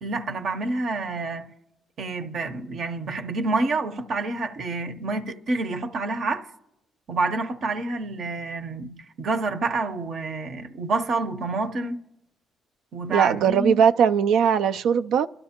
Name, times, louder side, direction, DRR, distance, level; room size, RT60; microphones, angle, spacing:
voice 1, 0.0-1.5 2.0-6.5 7.1-12.0 12.9-13.8, right 3 dB, 60° right, 0.8 m, -28 dB
voice 2, 13.1-15.3, right 7 dB, 80° right, 0.4 m, -20 dB
25.5 x 12.0 x 2.9 m
cardioid pair, 90°, 0 cm